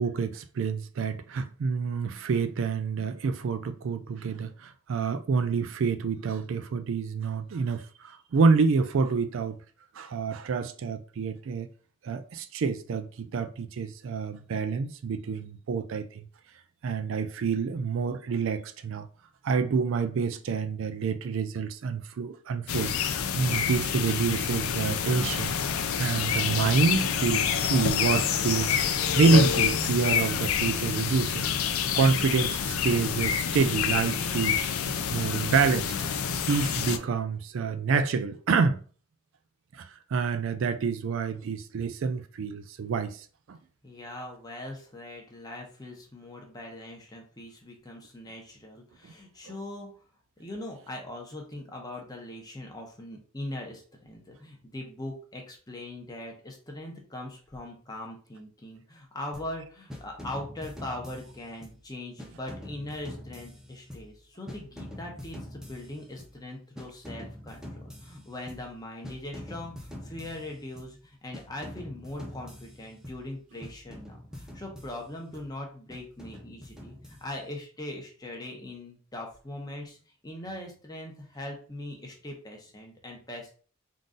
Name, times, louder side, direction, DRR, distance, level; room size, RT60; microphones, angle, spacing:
voice 1, 0.0-9.6 10.0-11.7 12.0-16.3 16.8-19.1 19.4-25.5 26.0-28.8 29.2-31.5 31.7-34.7 35.1-35.9 36.5-38.8 39.7-43.6, right 5 dB, 65° right, 0.3 m, -27 dB
sound 1, 22.7-37.0, left 7 dB, 90° left, 0.4 m, -27 dB
voice 2, 43.8-49.9 50.4-80.0 80.2-83.5, left 1 dB, 20° left, 0.9 m, -41 dB
sound 2, 59.3-59.6 59.9-61.9 62.2-64.2 64.5-66.4 66.8-68.8 69.0-71.0 71.3-73.3 73.6-75.5 75.9-77.6, left 1 dB, 5° right, 0.5 m, -45 dB
3.8 x 2.6 x 3.7 m
head